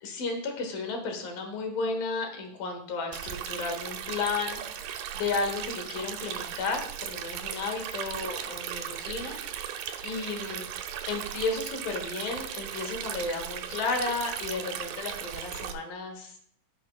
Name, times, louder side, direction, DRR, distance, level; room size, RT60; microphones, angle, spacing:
voice 1, 0.0-9.7 10.0-10.7 11.1-16.4, left 4 dB, 85° left, 4 dB, 3.1 m, -33 dB
Stream, 3.1-15.7, right 9 dB, 80° right, 2.2 m, -37 dB
15.5 x 5.8 x 2.3 m, 0.65 s
omnidirectional pair, 3.9 m